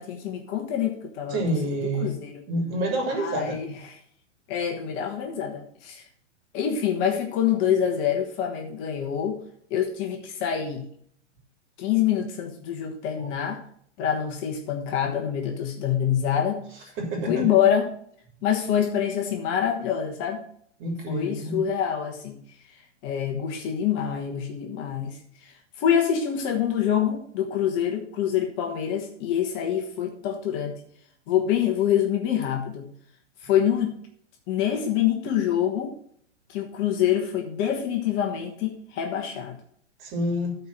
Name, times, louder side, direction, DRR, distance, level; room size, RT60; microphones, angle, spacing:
voice 1, 0.0-2.4 3.1-4.0 4.5-6.0 6.5-9.4 9.7-10.9 11.8-13.6 14.0-16.9 17.3-17.9 18.4-20.4 21.1-22.4 23.0-30.8 31.3-32.9 33.4-34.0 34.5-35.9 36.5-39.6, left 9 dB, 30° left, 3 dB, 1.3 m, -26 dB
voice 2, 1.3-2.1 2.5-3.6 13.2-13.3 17.0-17.4 20.8-21.6 40.0-40.6, right 1 dB, 35° right, 1 dB, 3.0 m, -28 dB
13.0 x 4.6 x 5.9 m, 0.64 s
hypercardioid pair, 125°, 37 cm